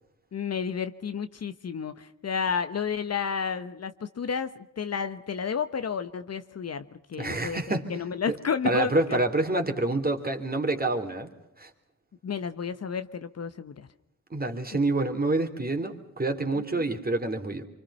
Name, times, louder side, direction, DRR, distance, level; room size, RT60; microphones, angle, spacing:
voice 1, 0.3-8.9 12.2-13.9, left 6 dB, 50° left, 10 dB, 1.2 m, -31 dB
voice 2, 7.2-7.9 8.3-8.4 8.6-11.3 11.6-11.7 14.3-17.6, right 2 dB, 25° right, 5 dB, 3.5 m, -27 dB
26.5 x 24.5 x 5.7 m, 0.83 s
cardioid pair, 65°, 33 cm